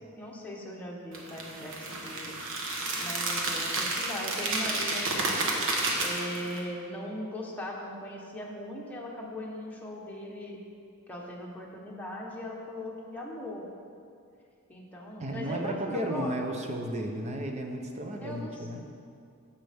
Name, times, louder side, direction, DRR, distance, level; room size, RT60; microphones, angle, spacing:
voice 1, 0.1-2.3 2.9-5.4 6.0-10.6 11.1-13.6 14.7-16.3 18.2-18.7, left 1 dB, 5° left, -3 dB, 1.1 m, -39 dB
sound 1, 1.1-6.6, right 2 dB, 60° right, 1.2 m, -31 dB
voice 2, 15.2-18.8, right 1 dB, 30° right, 3 dB, 0.8 m, -33 dB
14.0 x 5.6 x 3.5 m, 2.5 s
head